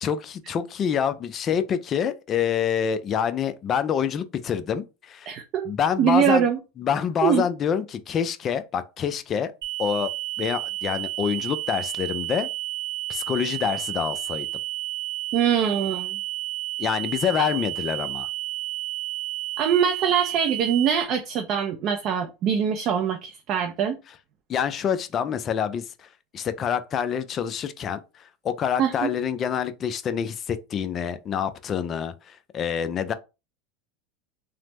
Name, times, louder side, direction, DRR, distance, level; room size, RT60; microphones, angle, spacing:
voice 1, 0.0-5.3 5.6-6.5 6.8-9.5 9.8-10.1 10.4-12.5 13.1-14.5 16.8-18.3 24.5-33.1, left 8 dB, 35° left, 0.4 m, -27 dB
voice 2, 5.3-5.7 6.0-6.6 7.2-7.4 15.3-16.2 19.6-24.0 28.8-29.1, right 8 dB, 45° right, 0.4 m, -23 dB
sound 1, 9.6-21.0, right 16 dB, 85° right, 0.7 m, -31 dB
3.2 x 2.0 x 2.9 m
supercardioid pair, 125°, 0 cm